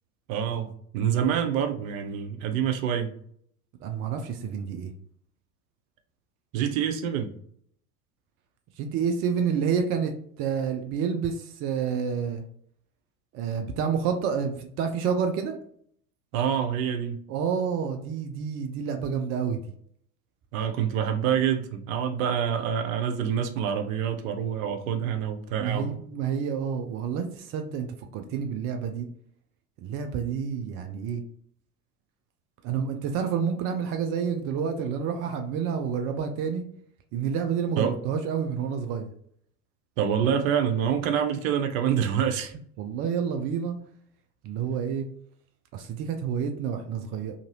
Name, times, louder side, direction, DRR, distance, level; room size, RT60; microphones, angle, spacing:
voice 1, 0.3-3.1 6.5-7.3 16.3-17.2 20.5-26.0 37.8-37.9 40.0-42.5, right 8 dB, 60° right, 6 dB, 0.7 m, -26 dB
voice 2, 3.8-4.9 8.8-12.4 13.3-15.6 17.3-19.6 25.6-27.9 28.1-29.1 29.8-31.2 32.6-36.6 37.1-39.1 42.8-43.8 44.4-45.1 45.7-47.3, right 7 dB, 30° right, 6 dB, 0.4 m, -29 dB
2.8 x 2.6 x 2.8 m, 0.63 s
hypercardioid pair, 85°, 46 cm